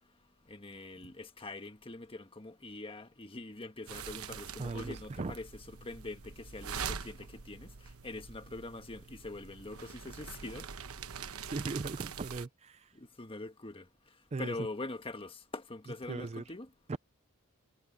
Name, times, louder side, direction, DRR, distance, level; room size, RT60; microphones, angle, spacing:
voice 1, 0.5-10.7 12.9-13.9 14.4-16.7, left 2 dB, 25° left, 1.5 m, -44 dB
sound 1, 3.9-12.5, right 6 dB, 75° right, 1.0 m, -44 dB
voice 2, 4.6-5.3 11.4-12.9 14.3-14.6 16.1-16.4 16.9-17.0, right 3 dB, 30° right, 0.4 m, -38 dB
head